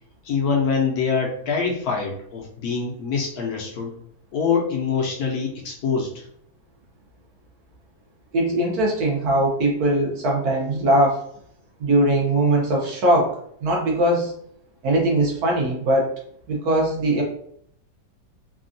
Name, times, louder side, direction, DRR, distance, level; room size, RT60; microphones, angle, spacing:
voice 1, 0.2-3.9 4.3-6.3, left 5 dB, 70° left, -1 dB, 1.0 m, -24 dB
voice 2, 8.3-11.2 11.8-14.4 14.8-16.1 16.5-17.2, right 1 dB, 65° right, -2 dB, 1.2 m, -20 dB
3.4 x 2.3 x 2.5 m, 0.67 s
omnidirectional pair, 1.8 m